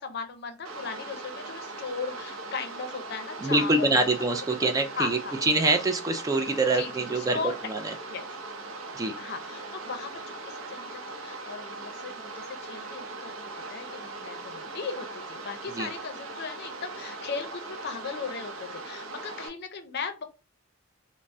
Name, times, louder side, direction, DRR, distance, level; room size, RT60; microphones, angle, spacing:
voice 1, 0.0-4.1 4.6-5.3 6.7-7.7 8.1-8.3 9.2-13.3 13.7-20.2, left 5 dB, 55° left, 7 dB, 0.5 m, -37 dB
sound 1, 0.6-19.5, right 3 dB, 90° right, 0.6 m, -40 dB
voice 2, 3.4-7.4 7.7-7.8 9.0-9.1 15.8-15.9, right 2 dB, 15° right, 6 dB, 0.3 m, -25 dB
2.6 x 2.0 x 3.3 m, 0.29 s
head